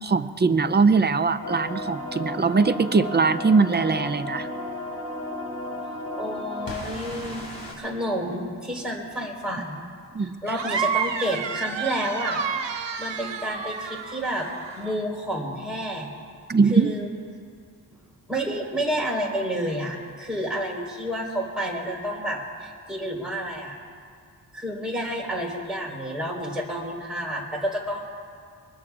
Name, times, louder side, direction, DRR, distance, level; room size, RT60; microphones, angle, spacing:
voice 1, 0.0-4.5 10.1-10.3 16.5-16.9, right 4 dB, 25° right, 12 dB, 0.4 m, -21 dB
piano trill glitchy frog, 1.4-7.7, left 1 dB, 55° left, 4.0 m, -34 dB
voice 2, 6.2-7.5 7.8-9.8 10.2-12.7 13.0-14.5 14.8-16.1 16.7-17.1 18.3-23.7 24.5-28.0, equal, ahead, -4 dB, 4.0 m, -30 dB
sound 1, 10.5-14.9, right 6 dB, 85° right, 1.0 m, -30 dB
24.0 x 20.5 x 2.4 m, 2.1 s
wide cardioid pair, 125°, 42 cm